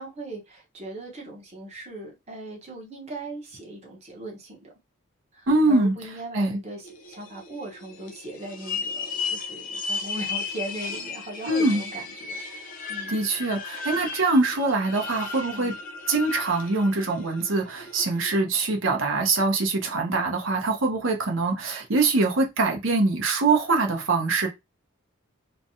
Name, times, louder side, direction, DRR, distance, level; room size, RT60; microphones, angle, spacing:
voice 1, 0.0-4.7 5.3-13.2 15.5-15.8, right 2 dB, 30° right, 0.9 m, -39 dB
voice 2, 5.5-5.9 6.3-6.6 11.4-11.8 13.1-15.7 16.1-24.5, right 3 dB, 65° right, 0.8 m, -23 dB
sound 1, 6.8-18.4, left 4 dB, 40° left, 0.5 m, -35 dB
3.2 x 2.2 x 2.6 m
head